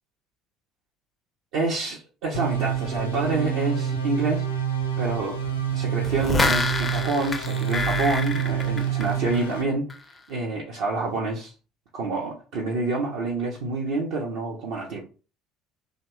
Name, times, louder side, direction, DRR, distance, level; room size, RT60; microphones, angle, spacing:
voice 1, 1.5-4.5 5.0-5.4 5.7-9.9 10.3-11.5 11.9-15.0, right 3 dB, 60° right, -3 dB, 0.6 m, -27 dB
sound 1, 2.3-9.6, right 8 dB, 80° left, 0.5 m, -27 dB
sound 2, 6.0-9.6 9.9-10.0, left 3 dB, 20° left, 0.4 m, -27 dB
2.9 x 2.1 x 3.1 m, 0.34 s
figure-of-eight pair, 60°, 0 cm